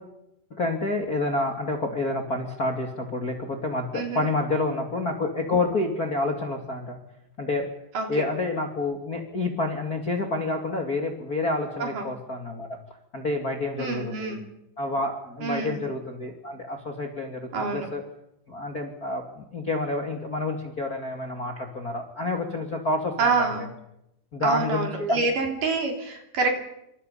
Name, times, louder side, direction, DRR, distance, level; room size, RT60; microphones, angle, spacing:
voice 1, 0.5-7.0 7.4-7.7 8.1-12.8 13.1-14.3 14.8-18.0 18.5-23.7 24.3-25.3, left 2 dB, 35° left, 2 dB, 1.7 m, -28 dB
voice 2, 3.9-4.3 7.9-8.3 11.8-12.1 13.8-14.5 15.4-15.8 17.5-17.9 23.2-23.7 24.4-26.5, right 4 dB, 50° right, 2 dB, 4.6 m, -27 dB
28.0 x 25.0 x 5.6 m, 0.85 s
omnidirectional pair, 5.1 m